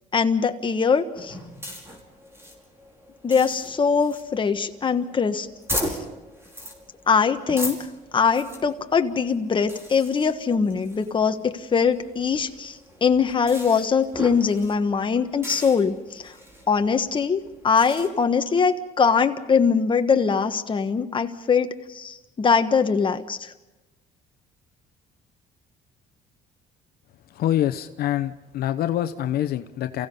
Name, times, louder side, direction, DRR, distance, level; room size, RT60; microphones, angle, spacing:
voice 1, 0.1-1.4 3.2-5.5 5.8-6.0 7.1-7.8 8.1-16.3 16.7-23.5, left 5 dB, 30° left, 7 dB, 1.4 m, -22 dB
sound 1, 1.1-18.1, equal, 15° right, 5.1 m, -38 dB
voice 2, 27.3-30.1, left 12 dB, 65° left, 9 dB, 0.9 m, -25 dB
29.0 x 16.0 x 5.5 m, 1.1 s
cardioid pair, 110°, 17 cm